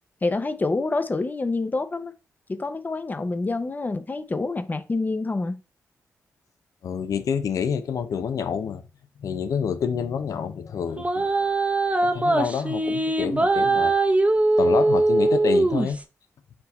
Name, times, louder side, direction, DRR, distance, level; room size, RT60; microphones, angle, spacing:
voice 1, 0.2-2.1 2.5-5.6, left 3 dB, 30° left, 0.6 m, -27 dB
voice 2, 6.8-8.8 9.2-11.6 12.0-13.9 14.6-16.0, left 7 dB, 70° left, 0.6 m, -28 dB
sound 1, 11.0-16.0, right 2 dB, 20° right, 0.7 m, -21 dB
4.4 x 2.8 x 4.0 m
supercardioid pair, 50°, 6 cm